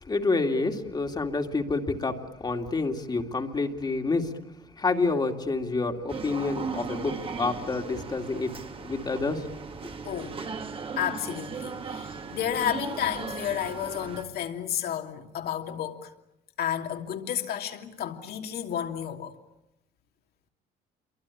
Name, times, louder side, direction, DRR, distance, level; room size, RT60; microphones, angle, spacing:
voice 1, 0.0-4.4 4.8-8.5 8.8-9.5 9.8-9.9, left 3 dB, 25° left, 2.5 m, -28 dB
sound 1, 6.1-14.2, right 5 dB, 30° right, 2.0 m, -37 dB
voice 2, 10.0-10.4 11.0-16.1 16.6-19.4, left 10 dB, 65° left, 2.8 m, -31 dB
27.5 x 23.5 x 8.5 m
cardioid pair, 110°, 17 cm